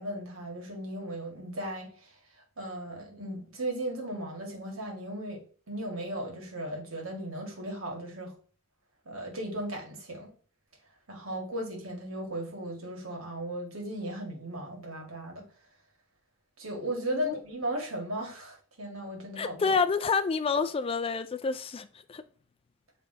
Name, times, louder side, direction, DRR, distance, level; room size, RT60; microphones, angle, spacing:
voice 1, 0.0-2.2 2.6-8.3 9.1-10.3 11.1-15.4 16.6-19.7, right 1 dB, 70° right, 1.9 m, -36 dB
voice 2, 19.4-22.2, left 5 dB, 25° left, 0.3 m, -28 dB
7.8 x 3.4 x 3.9 m
head